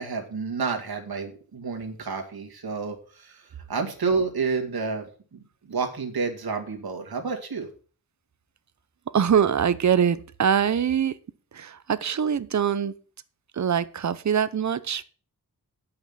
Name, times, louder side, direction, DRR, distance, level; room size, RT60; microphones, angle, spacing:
voice 1, 0.0-3.4 3.7-5.1 5.3-5.4 5.7-7.7, right 4 dB, 75° right, 3 dB, 2.3 m, -29 dB
voice 2, 9.1-11.1 11.5-12.9 13.6-15.0, right 8 dB, 50° right, 15 dB, 0.8 m, -23 dB
8.8 x 5.8 x 7.2 m, 0.40 s
wide cardioid pair, 80°, 37 cm